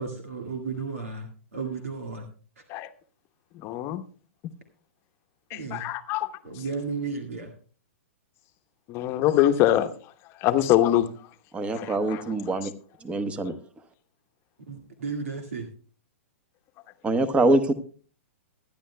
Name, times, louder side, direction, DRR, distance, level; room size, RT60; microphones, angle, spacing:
voice 1, 0.0-2.3 2.6-2.7 5.5-5.9 6.4-7.5 14.7-15.7, right 4 dB, 80° right, 1.8 m, -34 dB
voice 2, 3.5-4.0 5.5-6.3 6.5-6.6 8.9-11.3 11.7-12.7, left 13 dB, 35° left, 0.9 m, -25 dB
voice 3, 11.5-12.7 13.0-13.5 17.0-17.7, right 2 dB, 15° right, 1.0 m, -24 dB
22.5 x 10.0 x 2.2 m
hypercardioid pair, 120°, 7 cm